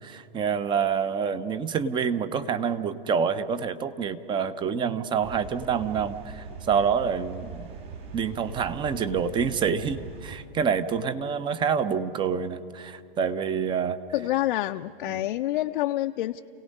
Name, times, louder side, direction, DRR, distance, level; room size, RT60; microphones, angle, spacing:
voice 1, 0.0-7.7 8.1-14.0 15.1-15.3, right 6 dB, 15° right, 14 dB, 0.6 m, -27 dB
sound 1, 5.2-10.4, right 5 dB, 60° right, 4.4 m, -41 dB
voice 2, 14.1-16.4, left 15 dB, 60° left, 6 dB, 0.5 m, -27 dB
28.5 x 17.0 x 5.4 m, 2.3 s
hypercardioid pair, 125°, 30 cm